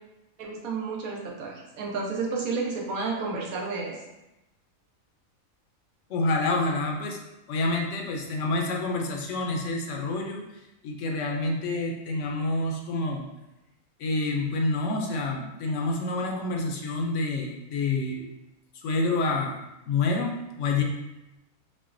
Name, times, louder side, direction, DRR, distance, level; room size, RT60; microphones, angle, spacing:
voice 1, 0.4-4.0, right 4 dB, 85° right, -1 dB, 1.2 m, -31 dB
voice 2, 6.1-7.2 7.5-10.4 10.8-13.3 14.0-18.3 18.8-19.6 19.9-20.8, left 2 dB, 70° left, 1 dB, 0.8 m, -28 dB
5.8 x 2.2 x 2.5 m, 0.95 s
omnidirectional pair, 1.4 m